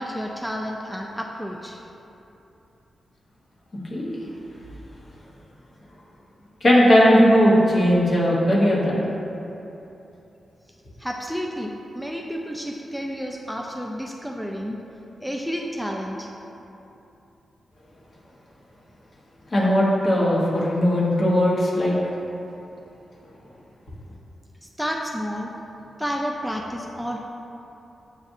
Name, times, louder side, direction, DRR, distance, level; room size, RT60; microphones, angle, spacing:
voice 1, 0.0-1.8 11.0-14.8 15.2-16.3 24.6-25.5 26.0-27.2, equal, ahead, 0 dB, 0.3 m, -30 dB
voice 2, 6.6-9.0 19.5-21.9, equal, 50° left, -5 dB, 1.0 m, -18 dB
7.2 x 2.4 x 2.6 m, 3.0 s
cardioid pair, 60°, 0 cm